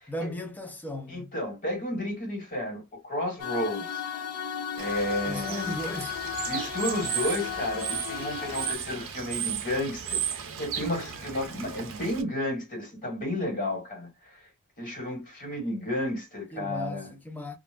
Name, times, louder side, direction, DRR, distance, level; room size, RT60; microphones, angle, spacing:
voice 1, 0.1-1.3 5.3-6.2 16.5-17.6, left 1 dB, 10° left, 0.4 m, -36 dB
voice 2, 1.1-4.0 4.7-5.8 6.5-14.4 14.8-17.1, left 1 dB, 40° left, 1.5 m, -32 dB
sound 1, 3.4-8.7, left 8 dB, 75° left, 0.5 m, -35 dB
Bird / Water, 4.8-12.2, right 9 dB, 60° right, 0.5 m, -35 dB
2.4 x 2.0 x 3.4 m
head